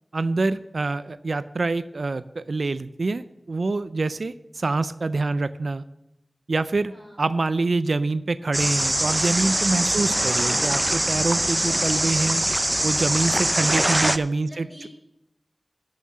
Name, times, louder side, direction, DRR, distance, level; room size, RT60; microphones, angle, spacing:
voice 1, 0.1-5.8 6.5-12.4 12.8-14.7, right 3 dB, 80° right, 14 dB, 0.3 m, -26 dB
sound 1, 8.5-14.2, right 1 dB, 25° right, 0.5 m, -23 dB
voice 2, 12.0-12.6 14.4-15.0, equal, ahead, 0 dB, 4.9 m, -47 dB
12.5 x 5.6 x 7.1 m, 0.88 s
wide cardioid pair, 45°, 0 cm